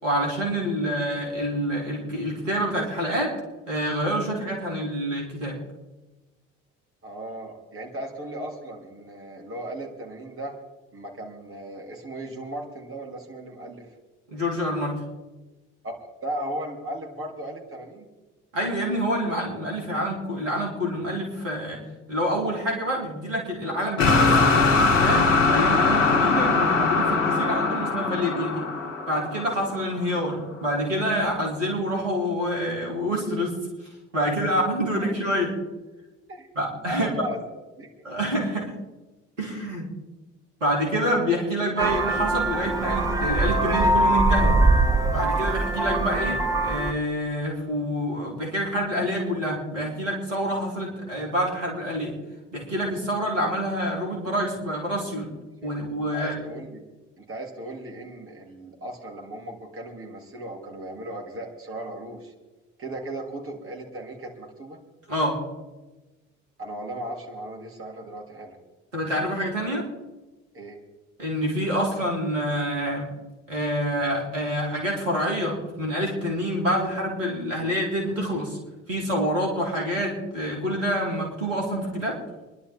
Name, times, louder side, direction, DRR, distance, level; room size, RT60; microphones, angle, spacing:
voice 1, 0.0-3.3 3.7-5.6 14.3-15.0 18.5-21.8 22.1-24.6 25.0-28.7 29.1-33.6 34.1-35.5 36.5-37.1 38.0-38.7 39.4-39.9 40.6-44.6 45.1-52.1 52.5-55.3 55.6-56.4 65.1-65.4 68.9-69.8 71.2-73.1 73.5-78.6 78.9-82.2, equal, 80° right, -1 dB, 3.3 m, -27 dB
voice 2, 7.0-10.5 10.9-14.0 15.8-18.1 34.2-34.9 36.3-36.5 36.8-37.9 55.6-55.7 56.1-56.9 57.2-62.3 62.8-64.8 66.6-68.6 70.5-70.8, right 1 dB, 35° right, -1 dB, 3.7 m, -36 dB
sound 1, 24.0-30.0, left 3 dB, 75° left, 1.2 m, -21 dB
Vehicle horn car horn honking, 41.8-46.9, right 2 dB, 10° right, 1.8 m, -22 dB
26.0 x 11.5 x 3.8 m, 1.1 s
figure-of-eight pair, 50°, 37 cm